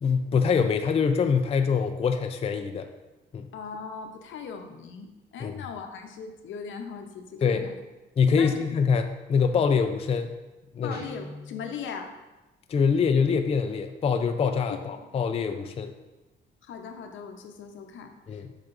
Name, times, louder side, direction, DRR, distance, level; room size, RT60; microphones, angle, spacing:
voice 1, 0.0-2.9 3.3-3.5 5.4-5.5 7.4-7.7 8.2-10.3 10.7-11.0 12.7-15.9 18.3-18.5, left 6 dB, 30° left, 7 dB, 0.4 m, -24 dB
voice 2, 3.5-7.7 8.2-8.7 10.8-12.1 14.8-15.0 16.6-18.6, left 6 dB, 75° left, 5 dB, 0.7 m, -39 dB
Guitar, 10.9-11.7, left 1 dB, 55° right, 1.1 m, -42 dB
7.7 x 4.8 x 2.5 m, 1.1 s
cardioid pair, 90°, 20 cm